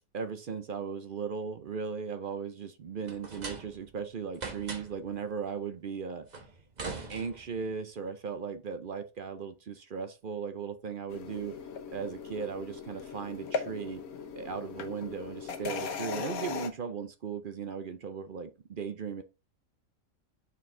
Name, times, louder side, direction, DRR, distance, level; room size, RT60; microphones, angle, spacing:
voice 1, 0.1-6.4 6.8-11.6 11.9-14.0 14.4-19.2, right 6 dB, 55° right, 0.6 m, -37 dB
sound 1, 3.1-4.0 4.3-5.1 6.3-7.7, right 4 dB, 35° right, 1.0 m, -41 dB
sound 2, 11.1-16.7, left 5 dB, 80° left, 1.4 m, -38 dB
6.5 x 4.5 x 3.7 m
omnidirectional pair, 1.5 m